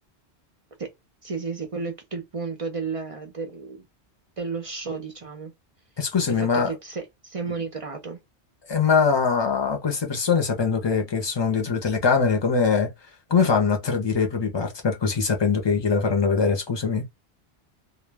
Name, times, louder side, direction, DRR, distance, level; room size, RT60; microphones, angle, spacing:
voice 1, 1.2-3.8 4.4-5.5 6.4-8.2, right 4 dB, 45° right, 0.4 m, -32 dB
voice 2, 6.0-6.7 8.7-12.9 13.3-17.1, left 5 dB, 30° left, 0.5 m, -22 dB
2.2 x 2.1 x 3.2 m
omnidirectional pair, 1.1 m